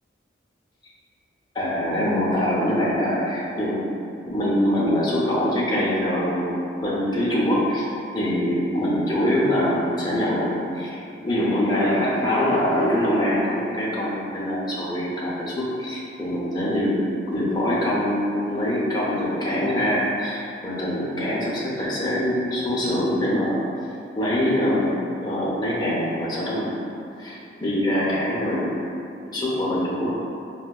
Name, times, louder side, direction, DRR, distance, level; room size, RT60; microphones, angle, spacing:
voice 1, 1.5-3.8 4.3-6.6 6.8-7.8 8.1-17.0 17.3-23.6 24.2-24.9 25.2-26.7 27.2-28.7 29.3-30.1, left 1 dB, 20° left, -7 dB, 0.5 m, -24 dB
4.4 x 2.1 x 2.2 m, 2.6 s
head